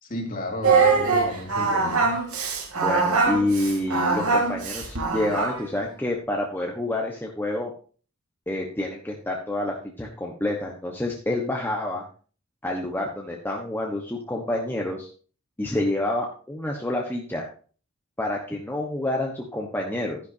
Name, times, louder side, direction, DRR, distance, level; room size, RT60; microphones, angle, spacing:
voice 1, 0.0-2.1, left 1 dB, 40° left, 1 dB, 2.8 m, -33 dB
Singing, 0.6-5.7, right 4 dB, 85° right, 2.9 m, -22 dB
voice 2, 2.7-7.7 8.5-12.0 12.6-15.1 15.6-17.5 18.2-20.2, left 1 dB, 10° left, 0 dB, 1.1 m, -28 dB
11.5 x 10.5 x 2.7 m, 0.40 s
head